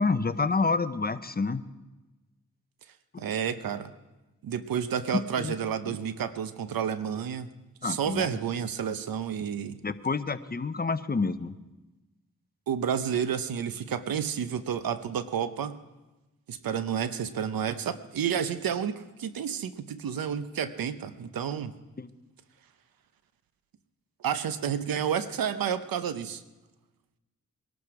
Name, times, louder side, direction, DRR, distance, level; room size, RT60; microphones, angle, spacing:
voice 1, 0.0-1.6 5.4-5.5 5.9-6.0 7.8-8.3 9.8-11.5 22.0-22.1, left 4 dB, 25° left, 12 dB, 0.7 m, -28 dB
voice 2, 3.2-3.9 4.4-7.5 7.8-9.8 12.7-15.8 16.5-21.7 24.2-26.4, right 8 dB, 85° right, 12 dB, 0.8 m, -30 dB
22.0 x 12.0 x 4.8 m, 1.1 s
cardioid pair, 65°, 34 cm